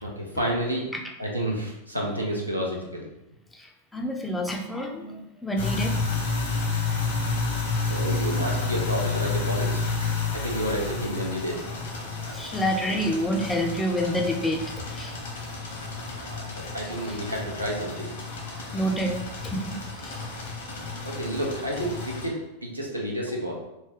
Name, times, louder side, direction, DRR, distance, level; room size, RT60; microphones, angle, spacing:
voice 1, 0.0-0.8 1.2-3.0 7.9-11.6 16.2-18.1 21.0-23.5, equal, 85° right, -1 dB, 0.7 m, -30 dB
voice 2, 3.5-6.3 12.3-15.2 16.8-17.2 18.3-19.2 19.4-20.2, equal, 5° left, 1 dB, 0.5 m, -29 dB
sound 1, 5.6-22.3, left 4 dB, 60° left, 1.0 m, -30 dB
3.1 x 2.8 x 3.2 m, 0.91 s
figure-of-eight pair, 90°, 0 cm